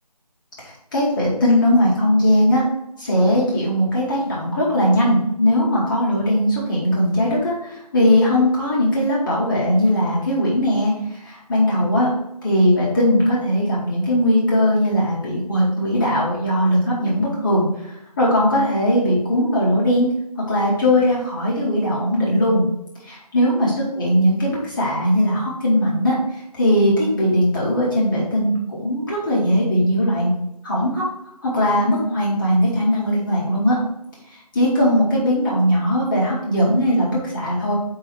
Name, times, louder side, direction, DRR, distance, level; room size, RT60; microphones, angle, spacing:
voice 1, 0.6-2.6 3.0-12.1 12.4-20.1 20.5-22.7 23.0-23.7 24.0-30.3 30.6-31.1 31.4-33.8 34.5-37.7, equal, 10° left, -16 dB, 1.0 m, -19 dB
4.8 x 4.6 x 4.6 m, 0.80 s
figure-of-eight pair, 160°, 21 cm